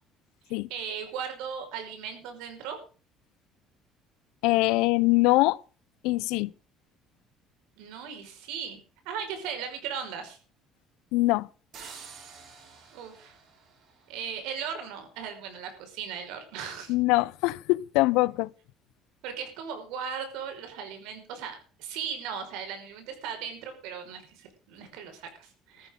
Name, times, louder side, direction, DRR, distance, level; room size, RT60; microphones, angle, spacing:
voice 1, 0.5-2.8 7.8-8.8 9.1-10.4 12.9-13.4 14.1-16.9 19.2-25.9, right 7 dB, 85° right, 5.4 m, -37 dB
voice 2, 4.4-5.6 6.0-6.5 11.1-11.5 16.9-18.5, left 21 dB, 90° left, 0.6 m, -23 dB
sound 1, 11.7-14.6, right 5 dB, 40° right, 3.8 m, -49 dB
15.0 x 14.0 x 3.8 m
cardioid pair, 170°, 0 cm